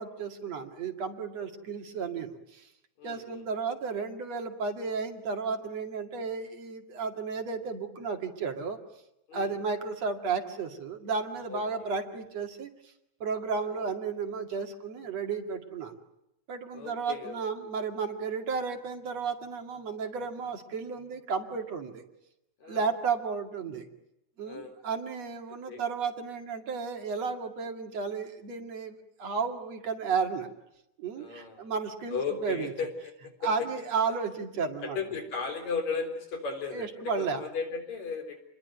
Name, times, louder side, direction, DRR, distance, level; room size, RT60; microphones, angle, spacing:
voice 1, 0.0-2.7 3.0-8.8 9.3-12.7 13.2-16.0 16.5-22.0 22.6-23.9 24.4-30.5 31.0-32.7 33.4-35.0 36.7-37.4, right 5 dB, 60° right, 4 dB, 3.4 m, -33 dB
voice 2, 3.0-3.4 9.3-9.6 11.5-11.6 13.7-13.8 16.7-17.4 22.6-22.9 24.4-24.7 25.7-25.8 31.2-31.7 32.1-32.9 33.2-33.5 34.8-36.9 37.2-38.4, left 5 dB, 70° left, 5 dB, 5.1 m, -35 dB
29.0 x 21.5 x 9.4 m, 0.85 s
omnidirectional pair, 3.3 m